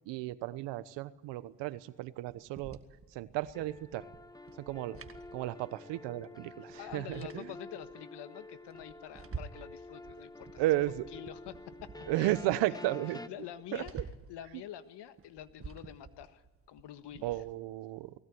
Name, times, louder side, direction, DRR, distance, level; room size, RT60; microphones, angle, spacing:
voice 1, 0.1-2.8 3.1-4.1 4.6-5.0 5.3-7.5 10.6-11.1 12.1-13.2 13.7-14.0 17.2-18.1, right 16 dB, 90° right, 15 dB, 1.1 m, -34 dB
sound 1, 2.3-6.0 6.2-6.3 6.7-7.9 8.4-9.7 10.0-12.6 13.0-13.1 13.4-14.4 15.0-17.5, right 5 dB, 30° right, 1.8 m, -49 dB
sound 2, 3.5-13.3, left 2 dB, 10° left, 1.3 m, -49 dB
voice 2, 6.8-10.6 11.1-12.4 13.3-17.3, left 11 dB, 75° left, 12 dB, 1.6 m, -47 dB
20.0 x 17.0 x 9.5 m, 1.2 s
cardioid pair, 90°, 42 cm